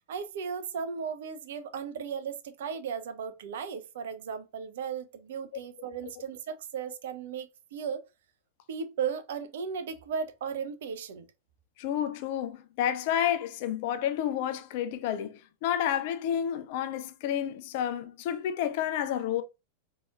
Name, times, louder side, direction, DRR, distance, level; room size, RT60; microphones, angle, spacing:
voice 1, 0.1-8.0 8.7-11.3, right 6 dB, 60° right, 0.4 m, -36 dB
voice 2, 11.8-19.4, left 10 dB, 50° left, 0.4 m, -30 dB
4.0 x 2.8 x 2.3 m
figure-of-eight pair, 90°, 0 cm